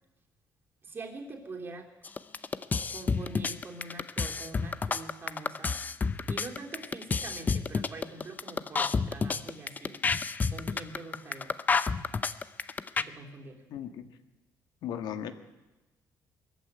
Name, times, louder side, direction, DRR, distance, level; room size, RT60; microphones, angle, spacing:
voice 1, 0.8-1.9 2.9-5.8 6.3-10.0 10.5-11.6 12.9-13.6, right 3 dB, 30° right, 2 dB, 3.2 m, -44 dB
sound 1, 2.0-13.0, left 5 dB, 25° left, 0.6 m, -29 dB
voice 2, 13.7-14.1 14.8-15.3, left 9 dB, 75° left, 9 dB, 1.9 m, -36 dB
21.0 x 14.5 x 9.8 m, 1.0 s
cardioid pair, 150°, 7 cm